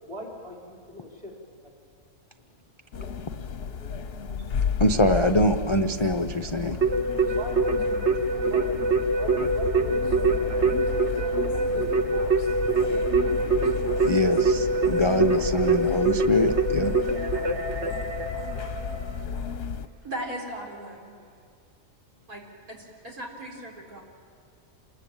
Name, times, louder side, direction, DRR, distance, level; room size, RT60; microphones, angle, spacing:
voice 1, 0.0-1.3 7.4-10.6 11.1-13.3 17.8-18.0 18.5-18.7, equal, 20° right, -1 dB, 4.8 m, -42 dB
sound 1, 2.9-19.9, left 6 dB, 50° left, 1.0 m, -33 dB
voice 2, 4.8-6.8 14.1-16.9, left 1 dB, 30° left, 6 dB, 0.5 m, -23 dB
Keyboard (musical), 6.8-19.2, right 3 dB, 50° right, 1.7 m, -25 dB
voice 3, 20.0-21.1 22.3-22.4 22.7-24.0, right 1 dB, 85° right, 0 dB, 4.6 m, -37 dB
27.5 x 20.5 x 8.9 m, 2.2 s
omnidirectional pair, 1.5 m